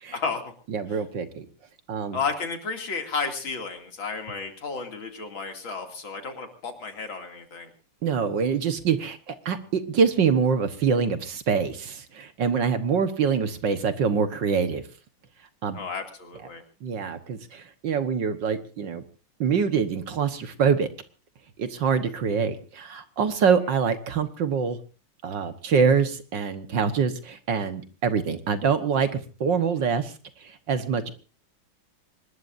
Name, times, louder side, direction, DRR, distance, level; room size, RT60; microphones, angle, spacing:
voice 1, 0.1-0.5 0.9-1.0 2.1-7.7 15.7-16.6, left 4 dB, 65° left, 5 dB, 3.4 m, -32 dB
voice 2, 0.7-1.5 1.9-2.2 8.0-14.8 15.6-15.8 16.8-19.0 19.4-20.9 21.6-24.8 25.2-30.1 30.4-31.1, right 6 dB, 60° right, 10 dB, 1.9 m, -25 dB
25.0 x 20.5 x 2.6 m, 0.35 s
omnidirectional pair, 2.3 m